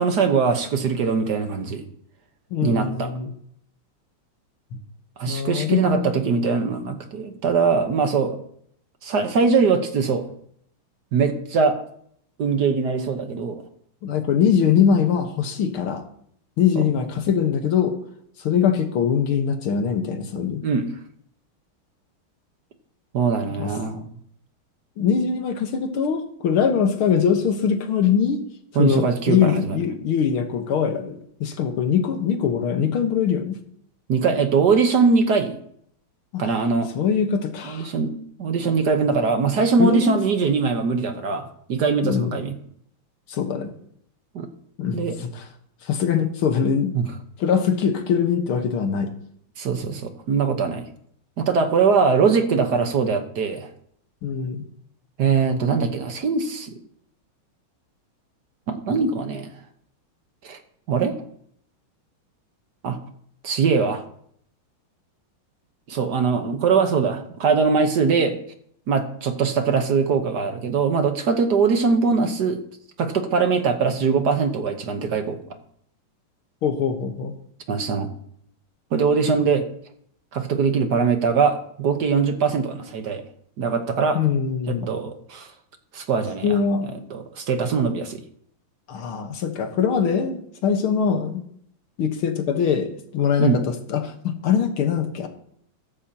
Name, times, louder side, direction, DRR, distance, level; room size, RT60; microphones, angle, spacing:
voice 1, 0.0-1.8 2.6-3.1 5.2-8.4 9.0-10.3 11.1-11.8 12.4-13.6 20.6-20.9 23.1-24.1 28.7-29.8 34.1-35.6 36.4-36.9 37.7-38.1 38.4-42.5 44.3-44.5 44.9-45.1 46.9-47.0 49.6-50.9 51.4-53.7 55.2-56.7 58.7-59.5 60.4-60.6 60.9-61.1 62.8-63.0 63.4-64.0 65.9-68.4 68.9-72.6 73.0-75.4 77.7-78.1 78.9-79.7 80.3-83.2 83.6-84.2 84.7-85.5 85.9-86.6 87.1-88.2 93.4-93.6, right 5 dB, 55° right, 6 dB, 1.5 m, -21 dB
voice 2, 2.5-3.3 4.7-4.8 5.3-6.2 14.0-16.0 16.6-18.0 18.4-20.6 23.5-23.7 25.0-28.4 28.8-33.6 36.3-36.5 37.0-37.9 39.8-40.2 42.0-42.4 43.3-43.7 44.8-45.4 45.8-47.0 47.4-49.1 54.2-54.6 76.6-77.3 84.1-84.9 86.4-86.9 88.9-91.4 92.0-95.3, left 7 dB, 80° left, 7 dB, 2.1 m, -22 dB
15.5 x 13.5 x 2.9 m, 0.65 s
omnidirectional pair, 2.3 m